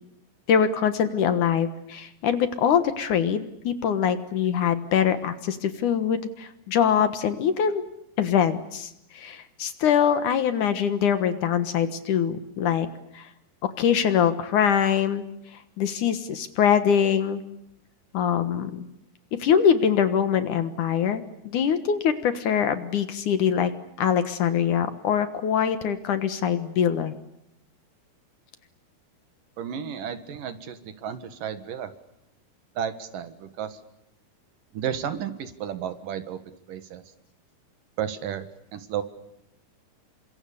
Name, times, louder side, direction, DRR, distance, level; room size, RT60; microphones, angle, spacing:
voice 1, 0.5-7.8 8.2-8.9 9.1-12.9 13.1-13.3 13.6-15.2 15.8-17.4 18.1-18.9 19.4-23.7 24.0-27.1, left 8 dB, 60° left, 10 dB, 2.6 m, -23 dB
voice 2, 29.6-31.9 32.8-33.8 34.7-36.4 36.7-37.0 38.0-39.0, right 8 dB, 65° right, 10 dB, 3.0 m, -33 dB
29.0 x 25.5 x 7.0 m, 0.81 s
omnidirectional pair, 4.3 m